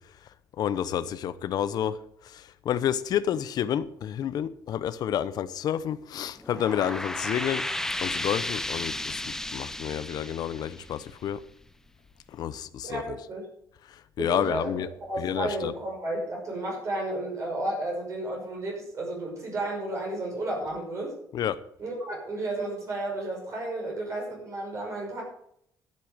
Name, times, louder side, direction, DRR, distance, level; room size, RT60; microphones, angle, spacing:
voice 1, 0.6-2.0 2.6-7.6 8.0-11.4 12.4-13.0 14.2-14.9 15.2-15.7 21.3-21.6, left 10 dB, 60° left, 0.9 m, -29 dB
sound 1, 6.4-11.6, left 1 dB, 5° left, 0.6 m, -33 dB
voice 2, 12.8-13.5 14.2-21.1 21.8-25.2, right 2 dB, 40° right, 5.7 m, -32 dB
12.5 x 8.4 x 6.6 m
cardioid pair, 130°, 8 cm